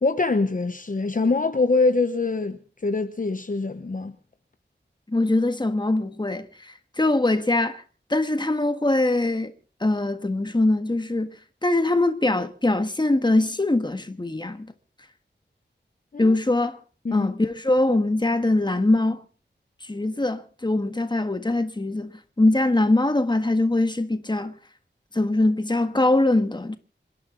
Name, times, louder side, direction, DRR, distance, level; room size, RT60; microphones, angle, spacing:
voice 1, 0.0-4.1 16.1-16.4 17.0-17.3, left 3 dB, 45° left, 1.0 m, -24 dB
voice 2, 5.1-7.8 8.1-9.5 9.8-11.3 11.6-14.7 16.2-16.8 17.1-19.2 19.8-24.5 25.1-26.8, left 2 dB, 25° left, 1.6 m, -22 dB
27.5 x 11.0 x 3.9 m
wide cardioid pair, 85°, 19 cm